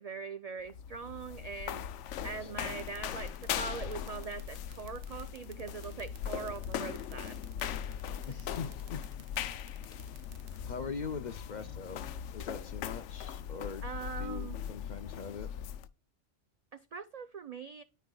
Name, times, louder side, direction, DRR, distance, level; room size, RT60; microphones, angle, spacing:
voice 1, 0.0-1.9 2.2-7.4 8.3-8.4 13.8-14.6 16.7-17.8, right 5 dB, 85° right, 0.3 m, -42 dB
sound 1, 0.6-15.9, left 9 dB, 80° left, 0.9 m, -40 dB
sound 2, 2.7-10.6, right 9 dB, 55° right, 0.8 m, -55 dB
voice 2, 8.3-9.0 10.6-13.8 14.2-15.5, left 5 dB, 55° left, 0.5 m, -42 dB
13.0 x 4.6 x 2.2 m
omnidirectional pair, 1.2 m